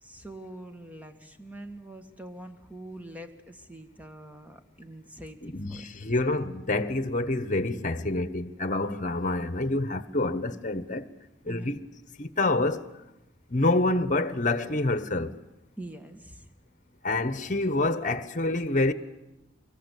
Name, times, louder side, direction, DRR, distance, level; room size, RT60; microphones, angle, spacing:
voice 1, 0.0-5.9 11.5-11.8 15.8-16.5, right 1 dB, 10° right, 1.8 m, -44 dB
voice 2, 5.4-11.1 11.5-11.9 12.2-12.8 13.5-15.3 17.0-18.9, left 2 dB, 45° left, 1.2 m, -27 dB
25.5 x 22.0 x 8.4 m
head